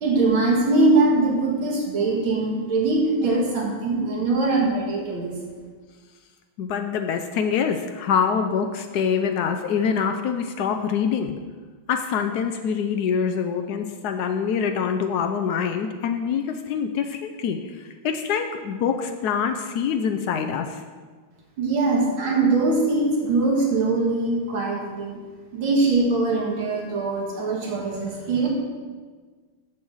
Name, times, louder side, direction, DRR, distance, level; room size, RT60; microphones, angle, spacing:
voice 1, 0.0-5.3 21.6-25.2 25.5-28.5, right 3 dB, 70° right, -1 dB, 2.5 m, -22 dB
voice 2, 6.6-11.4 11.9-20.8, left 7 dB, 90° left, 5 dB, 0.8 m, -25 dB
7.2 x 7.1 x 6.3 m, 1.5 s
omnidirectional pair, 2.3 m